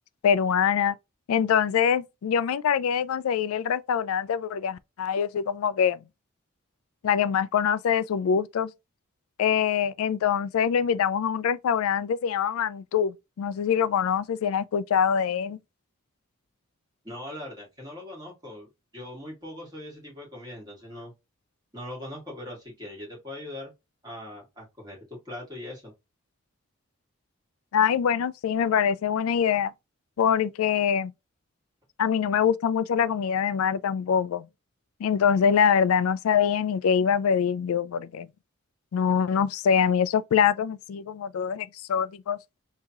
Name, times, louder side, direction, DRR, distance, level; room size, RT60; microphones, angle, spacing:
voice 1, 0.2-1.0 1.3-6.0 7.0-8.7 9.4-15.6 27.7-29.7 30.2-31.1 32.0-34.5 35.0-38.3 38.9-42.4, left 7 dB, 80° left, 0.3 m, -24 dB
voice 2, 17.0-21.1 21.7-23.7 24.0-25.9, left 1 dB, 20° right, 1.8 m, -41 dB
3.5 x 2.8 x 2.8 m
head